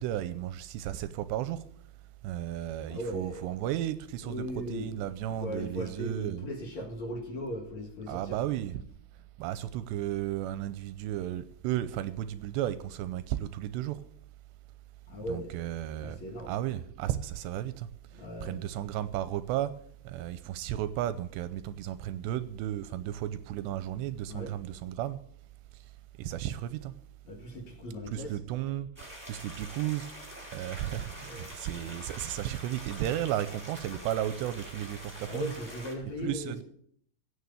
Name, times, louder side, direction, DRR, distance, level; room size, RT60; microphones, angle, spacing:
voice 1, 0.0-1.6 2.2-6.5 8.1-8.8 9.4-14.0 15.2-16.2 16.5-17.9 18.4-19.7 20.0-25.2 26.2-26.9 28.1-30.1 30.5-35.5 36.0-36.6, right 12 dB, 80° right, 2.7 m, -34 dB
voice 2, 2.9-3.5 4.2-4.9 5.4-8.4 15.1-15.5 16.0-16.5 18.1-18.6 24.3-24.5 27.2-28.4 31.0-31.6 31.9-32.0 35.3-36.6, equal, 50° left, 2.4 m, -38 dB
sound 1, 29.0-35.9, equal, 5° right, 3.7 m, -45 dB
16.5 x 6.5 x 8.3 m
omnidirectional pair, 5.2 m